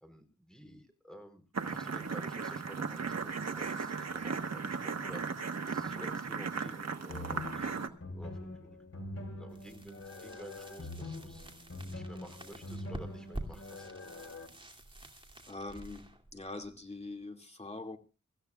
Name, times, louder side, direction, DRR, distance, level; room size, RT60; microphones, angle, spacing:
voice 1, 0.0-8.8 9.4-11.5 11.8-13.9, equal, ahead, 7 dB, 3.9 m, -52 dB
sound 1, 1.5-7.9, right 5 dB, 55° right, 1.3 m, -36 dB
sound 2, 7.1-14.5, left 2 dB, 50° left, 2.9 m, -44 dB
sound 3, 9.5-17.2, right 1 dB, 15° right, 2.6 m, -49 dB
voice 2, 15.5-16.1 16.3-18.0, left 2 dB, 20° left, 5 dB, 2.3 m, -43 dB
25.5 x 14.5 x 2.4 m, 0.31 s
wide cardioid pair, 95°, 31 cm